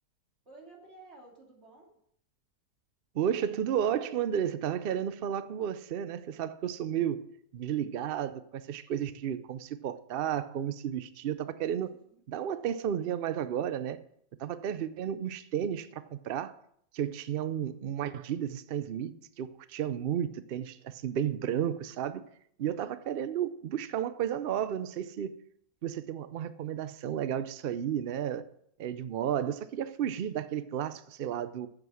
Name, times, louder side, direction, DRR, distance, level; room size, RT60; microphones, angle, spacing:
voice 1, 0.4-1.9 11.9-12.2 22.6-23.2, right 3 dB, 40° right, 3.1 m, -55 dB
voice 2, 3.1-7.2 7.5-11.9 12.3-14.0 14.4-16.5 16.9-22.2 22.6-25.4 25.8-28.4 28.8-31.7, right 9 dB, 85° right, 0.5 m, -32 dB
9.7 x 7.6 x 6.2 m
omnidirectional pair, 1.7 m